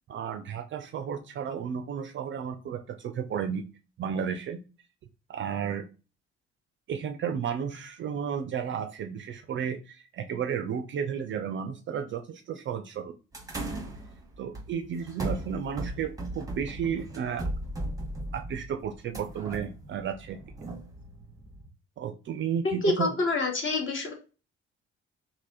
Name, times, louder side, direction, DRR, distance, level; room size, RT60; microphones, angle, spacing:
voice 1, 0.1-3.6 4.0-4.6 5.3-5.9 6.9-13.2 13.7-13.9 14.4-17.5 18.3-20.4 22.0-23.1, right 7 dB, 40° right, 7 dB, 0.4 m, -33 dB
sound 1, 13.3-21.7, right 1 dB, 10° right, 0.8 m, -38 dB
voice 2, 22.6-24.1, left 2 dB, 40° left, 2 dB, 1.1 m, -27 dB
3.2 x 2.6 x 2.6 m, 0.32 s
figure-of-eight pair, 45°, 32 cm